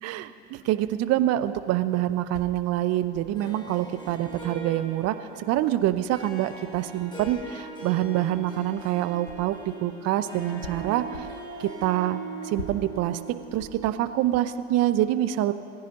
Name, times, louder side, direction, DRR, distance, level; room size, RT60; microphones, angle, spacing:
voice 1, 0.0-11.3 11.6-13.2 13.5-15.5, right 13 dB, 50° right, 13 dB, 0.7 m, -26 dB
sound 1, 2.3-9.8 10.1-14.9, left 4 dB, 85° left, 1.0 m, -46 dB
Harp, 3.3-14.5, right 3 dB, 15° left, 3.2 m, -41 dB
22.0 x 15.5 x 3.0 m, 2.7 s
figure-of-eight pair, 65°, 33 cm